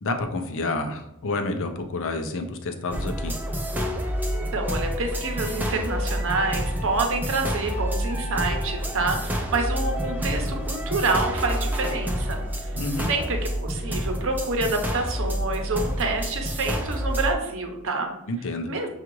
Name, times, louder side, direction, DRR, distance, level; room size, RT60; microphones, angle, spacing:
voice 1, 0.0-3.3 12.8-13.1 18.3-18.7, left 2 dB, 60° left, 6 dB, 0.5 m, -29 dB
sound 1, 2.9-17.3, equal, 10° right, 0.4 m, -28 dB
voice 2, 4.3-12.8 13.1-18.1 18.7-18.9, right 3 dB, 60° right, 3 dB, 0.8 m, -27 dB
6.9 x 2.4 x 3.0 m, 0.92 s
head